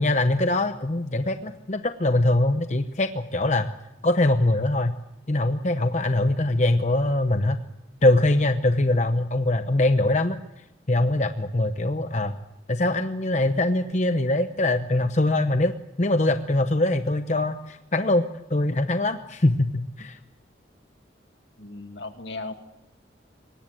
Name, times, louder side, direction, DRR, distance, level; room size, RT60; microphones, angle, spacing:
voice 1, 0.0-3.7 4.0-4.9 5.3-7.6 8.0-10.4 10.9-12.4 12.7-15.7 16.0-20.2, left 2 dB, 40° left, 8 dB, 0.9 m, -23 dB
voice 2, 21.6-22.5, left 3 dB, 70° left, 6 dB, 2.3 m, -36 dB
23.0 x 19.0 x 7.7 m, 0.89 s
head